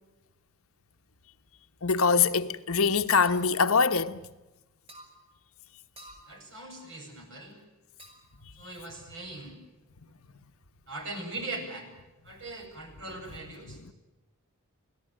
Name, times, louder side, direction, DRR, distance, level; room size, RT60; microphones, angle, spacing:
voice 1, 1.8-4.2 13.6-13.9, left 5 dB, 70° left, 1.1 m, -24 dB
sound 1, 3.2-3.5 4.9-5.1 6.0-6.3 8.0-8.4, right 1 dB, 25° right, 6.2 m, -49 dB
voice 2, 6.3-7.6 8.6-9.6 10.9-11.9 12.2-13.8, right 2 dB, 55° right, 7.8 m, -40 dB
28.5 x 18.0 x 8.9 m
head